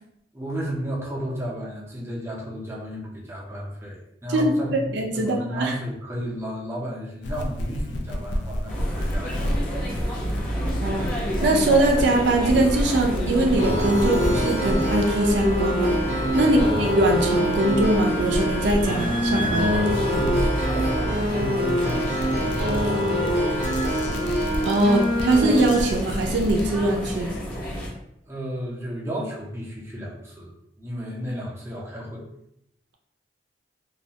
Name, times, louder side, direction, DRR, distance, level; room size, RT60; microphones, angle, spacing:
voice 1, 0.3-9.5 16.4-16.7 19.8-22.8 23.1-23.5 24.0-24.3 28.2-32.2, equal, 15° right, -4 dB, 0.5 m, -33 dB
voice 2, 4.3-5.7 10.8-11.1 11.4-19.7 24.6-27.4, right 2 dB, 70° right, 2 dB, 0.4 m, -22 dB
sound 1, 7.2-26.7, equal, 70° left, 0.4 m, -31 dB
sound 2, 8.7-27.9, equal, 50° left, 0.8 m, -30 dB
sound 3, 13.6-25.6, equal, 40° right, 0.8 m, -25 dB
2.3 x 2.1 x 2.8 m, 0.79 s
head